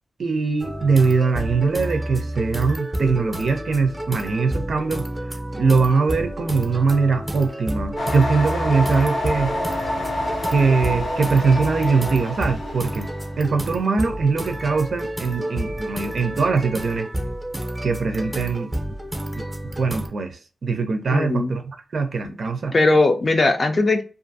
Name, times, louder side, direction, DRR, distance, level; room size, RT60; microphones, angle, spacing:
voice 1, 0.2-5.1 5.5-9.5 10.5-13.1 13.4-17.1 17.8-18.7 19.4-19.5 19.8-22.7, right 4 dB, 70° right, 0.5 m, -22 dB
sound 1, 0.6-20.1, right 1 dB, 10° right, 0.6 m, -30 dB
sound 2, 7.9-13.3, left 1 dB, 75° left, 0.7 m, -27 dB
voice 2, 21.1-21.6 22.7-24.0, left 2 dB, 45° left, 0.5 m, -19 dB
2.5 x 2.5 x 2.6 m
wide cardioid pair, 85°, 0 cm